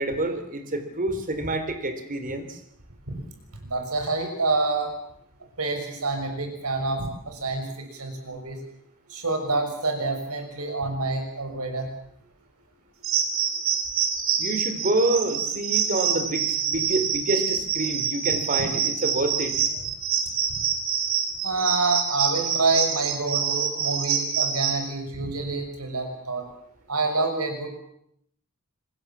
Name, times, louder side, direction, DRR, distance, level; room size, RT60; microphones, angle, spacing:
voice 1, 0.0-2.6 14.4-19.5, right 2 dB, 40° right, 8 dB, 3.5 m, -27 dB
voice 2, 3.6-4.9 5.6-8.6 9.1-11.9 20.5-20.6 21.4-26.5 26.9-27.7, right 3 dB, 85° right, 5 dB, 6.4 m, -27 dB
sound 1, 13.0-24.8, right 7 dB, 65° right, 3.6 m, -26 dB
26.5 x 20.5 x 7.4 m, 0.73 s
head